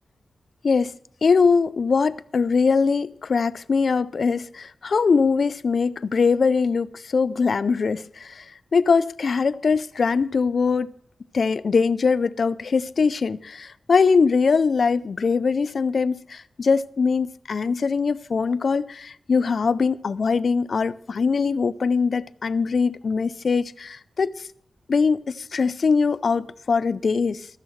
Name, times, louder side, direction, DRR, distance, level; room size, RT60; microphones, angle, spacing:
voice 1, 1.2-8.5 8.7-10.9 11.3-24.5 24.9-27.5, left 5 dB, 55° left, 0.3 m, -22 dB
14.0 x 12.5 x 3.1 m
wide cardioid pair, 135°, 0 cm